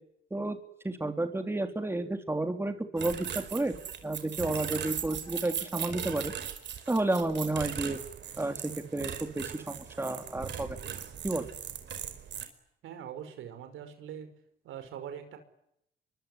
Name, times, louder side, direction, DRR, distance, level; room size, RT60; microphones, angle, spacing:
voice 1, 0.8-3.7 4.0-6.3 6.9-8.0 8.4-10.8 11.2-11.5, right 2 dB, 10° right, 6 dB, 3.4 m, -31 dB
sound 1, 3.0-12.5, right 8 dB, 65° right, 4.7 m, -39 dB
voice 2, 12.8-14.3 14.6-15.4, right 9 dB, 85° right, 8 dB, 5.5 m, -42 dB
25.0 x 24.0 x 9.8 m, 0.77 s
cardioid pair, 90°, 20 cm